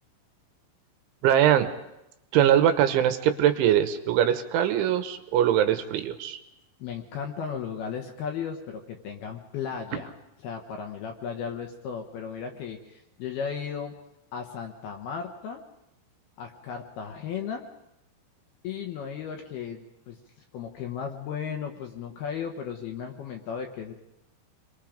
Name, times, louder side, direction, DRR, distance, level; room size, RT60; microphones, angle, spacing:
voice 1, 1.2-1.7 2.3-6.4, right 10 dB, 75° right, 8 dB, 3.3 m, -22 dB
voice 2, 6.8-10.1 10.4-13.9 14.3-15.6 16.4-17.6 18.6-20.2 20.5-23.9, left 7 dB, 70° left, 3 dB, 2.6 m, -35 dB
28.5 x 23.0 x 5.1 m, 0.88 s
omnidirectional pair, 5.7 m